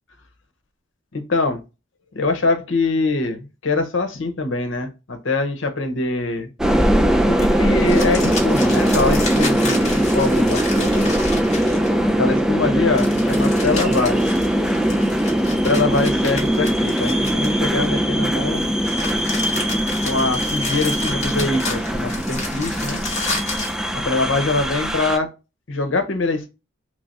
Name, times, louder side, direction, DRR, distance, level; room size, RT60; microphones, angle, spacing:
voice 1, 1.1-1.6 2.1-6.5 7.0-11.1 12.2-14.3 15.6-18.7 20.0-23.0 24.0-25.3 25.7-26.5, left 3 dB, 75° left, 7 dB, 0.8 m, -23 dB
sound 1, 6.6-25.2, equal, 5° right, 0.3 m, -20 dB
sound 2, 7.8-12.1 12.9-17.9 18.6-23.8, left 3 dB, 35° left, 1.4 m, -31 dB
3.3 x 3.3 x 2.6 m, 0.27 s
head